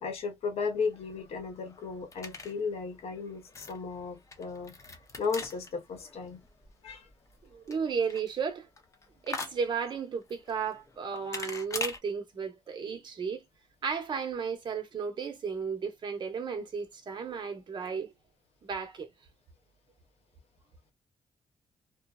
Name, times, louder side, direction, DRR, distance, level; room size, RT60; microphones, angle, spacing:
voice 1, 0.0-4.7 5.2-6.4 6.8-7.1, left 5 dB, 75° left, 1.0 m, -35 dB
sound 1, 0.8-12.0, left 3 dB, 30° left, 0.7 m, -44 dB
voice 2, 7.5-8.7 9.2-13.4 13.8-18.1 18.6-19.1, right 6 dB, 45° right, 0.9 m, -34 dB
2.7 x 2.1 x 2.3 m
cardioid pair, 120°, 10 cm